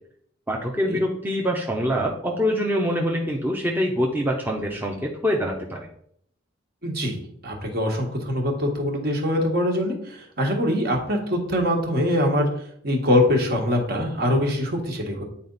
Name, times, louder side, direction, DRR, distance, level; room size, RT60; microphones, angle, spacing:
voice 1, 0.5-5.9, equal, 10° right, 0 dB, 0.7 m, -25 dB
voice 2, 6.8-7.2 7.4-12.5 12.8-15.2, left 1 dB, 50° right, 1 dB, 1.7 m, -23 dB
9.3 x 4.3 x 4.0 m, 0.66 s
head